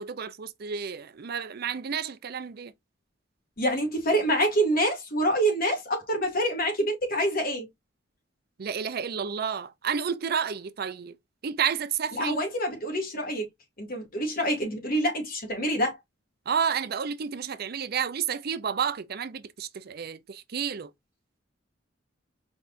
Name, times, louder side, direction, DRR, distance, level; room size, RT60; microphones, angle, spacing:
voice 1, 0.0-2.7 8.6-11.2 11.4-12.4 16.5-20.9, right 7 dB, 55° right, 0.5 m, -31 dB
voice 2, 3.6-7.7 12.1-13.5 13.8-16.0, right 1 dB, 50° left, 2.4 m, -26 dB
4.8 x 4.1 x 2.6 m
head